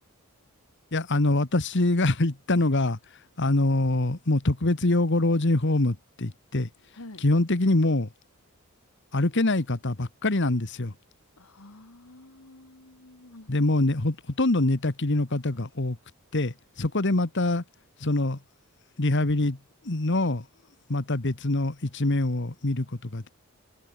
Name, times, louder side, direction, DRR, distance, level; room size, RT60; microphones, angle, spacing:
voice 1, 0.9-3.0 3.4-6.7 7.2-8.1 9.1-10.9 13.5-16.0 16.3-17.6 18.0-18.4 19.0-19.6 19.8-20.4 20.9-23.3, left 2 dB, 55° left, 1.4 m, -24 dB
voice 2, 11.4-13.5, left 2 dB, 75° left, 2.1 m, -48 dB
head